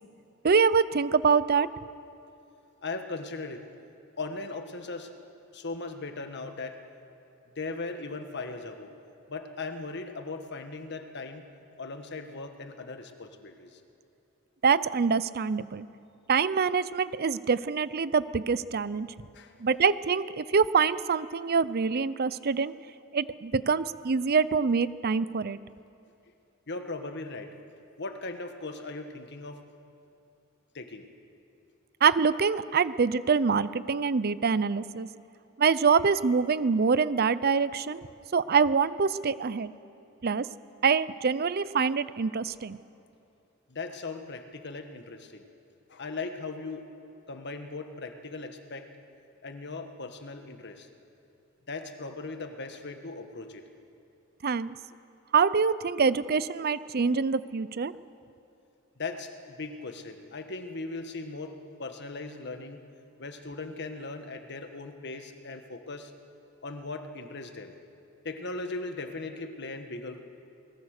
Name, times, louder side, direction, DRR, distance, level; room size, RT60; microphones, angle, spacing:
voice 1, 0.4-1.7 14.6-15.9 16.3-19.1 19.6-22.7 23.1-25.6 32.0-35.1 35.6-38.1 38.3-39.7 40.2-40.5 40.8-42.8 54.4-54.8 55.3-57.9, right 5 dB, 45° right, 16 dB, 0.6 m, -25 dB
voice 2, 2.8-3.6 4.2-5.1 5.5-6.8 7.5-8.9 9.3-11.4 11.8-13.8 19.3-19.5 26.7-27.5 28.0-29.6 30.7-31.1 43.7-45.5 45.9-46.9 47.3-48.9 49.4-50.9 51.7-53.6 59.0-62.8 63.2-66.1 66.6-67.7 68.2-70.2, left 3 dB, 55° left, 7 dB, 1.5 m, -38 dB
22.0 x 20.5 x 6.6 m, 2.7 s
head